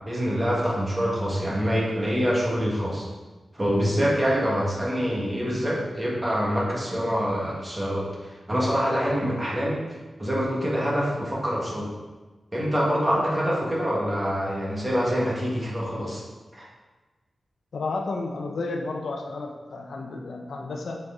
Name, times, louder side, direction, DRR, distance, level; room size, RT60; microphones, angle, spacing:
voice 1, 0.0-3.0 3.6-8.1 8.5-9.8 10.2-11.9 12.5-16.2 16.5-16.7, equal, 20° right, -5 dB, 1.7 m, -25 dB
voice 2, 17.7-21.0, left 3 dB, 80° left, 2 dB, 0.8 m, -32 dB
7.9 x 4.7 x 3.7 m, 1.2 s
wide cardioid pair, 130°, 0 cm